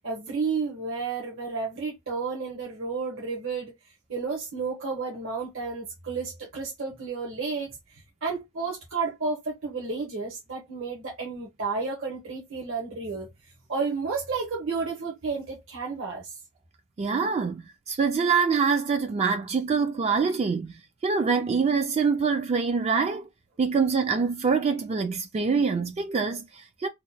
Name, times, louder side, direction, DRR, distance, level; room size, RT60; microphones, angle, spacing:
voice 1, 0.0-3.7 4.1-13.3 13.7-16.4, right 4 dB, 70° right, 0.9 m, -32 dB
voice 2, 17.0-20.8 21.0-23.3 23.6-26.9, right 5 dB, 30° right, 0.3 m, -25 dB
2.9 x 2.1 x 3.9 m
head